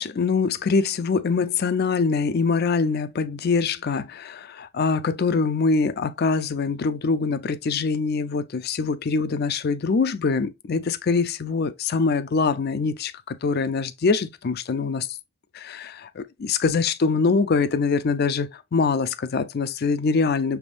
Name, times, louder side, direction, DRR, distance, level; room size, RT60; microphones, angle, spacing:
voice 1, 0.0-15.1 15.5-20.6, left 4 dB, 50° left, 0.4 m, -24 dB
6.0 x 3.5 x 2.5 m
head